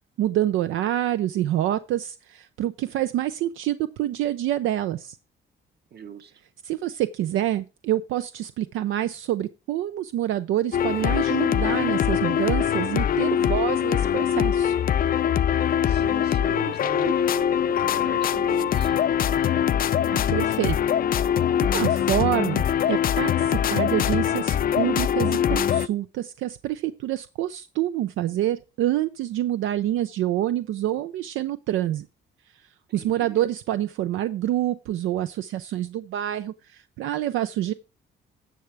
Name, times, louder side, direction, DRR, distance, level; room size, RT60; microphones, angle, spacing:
voice 1, 0.2-5.2 6.6-14.7 20.1-20.8 21.3-21.4 21.7-32.1 32.9-37.7, right 12 dB, 85° right, 12 dB, 0.5 m, -27 dB
voice 2, 5.9-6.3 15.8-19.0 32.9-33.4, right 7 dB, 55° right, 9 dB, 1.4 m, -39 dB
sound 1, 10.7-25.9, left 9 dB, 45° left, 0.4 m, -23 dB
10.0 x 6.8 x 4.7 m, 0.30 s
cardioid pair, 90°, 20 cm